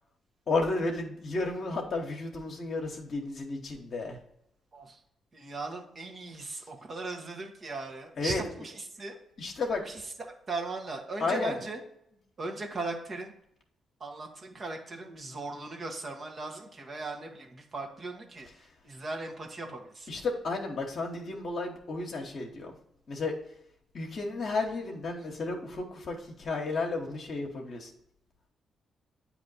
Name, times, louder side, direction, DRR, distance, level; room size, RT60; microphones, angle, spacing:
voice 1, 0.5-4.2 8.2-8.4 9.4-9.8 11.2-11.5 20.1-22.7 23.1-23.3 23.9-27.9, left 3 dB, 60° left, 0 dB, 0.9 m, -32 dB
voice 2, 5.3-9.2 9.8-11.8 12.4-13.3 14.0-20.1, right 3 dB, 45° right, 2 dB, 1.3 m, -38 dB
8.8 x 3.0 x 4.0 m, 0.76 s
hypercardioid pair, 45°, 0 cm